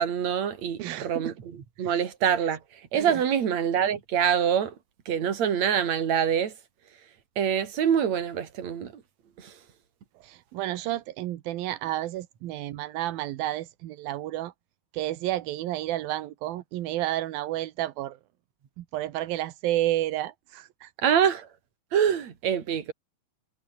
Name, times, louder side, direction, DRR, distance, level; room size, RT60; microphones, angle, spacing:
voice 1, 0.0-2.6 2.9-4.7 5.1-6.5 7.4-8.9 9.4-9.5 21.0-21.5 21.9-22.9, right 8 dB, 50° right, 3.7 m, -25 dB
voice 2, 0.8-1.3 1.8-1.9 2.9-3.2 10.2-14.5 14.9-18.2 18.8-20.9, right 14 dB, 90° right, 3.0 m, -31 dB
omnidirectional pair, 4.1 m